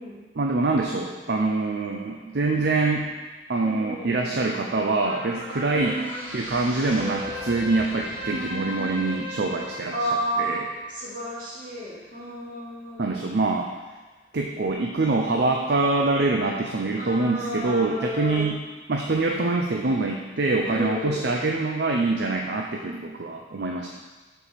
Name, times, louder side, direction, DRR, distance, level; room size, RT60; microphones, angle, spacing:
voice 1, 0.4-3.1 3.5-6.0 6.3-9.9 10.4-10.7 13.0-13.7 14.3-18.6 18.9-23.9, right 3 dB, 65° right, 1 dB, 0.6 m, -25 dB
voice 2, 3.6-4.4 5.7-6.2 8.3-9.0 9.9-10.6 10.9-13.3 16.9-18.5 20.6-21.3, right 1 dB, 50° right, -7 dB, 2.7 m, -32 dB
sound 1, 5.0-11.6 12.1-12.2, equal, 15° right, 2.5 m, -37 dB
7.1 x 4.6 x 6.9 m, 1.3 s
head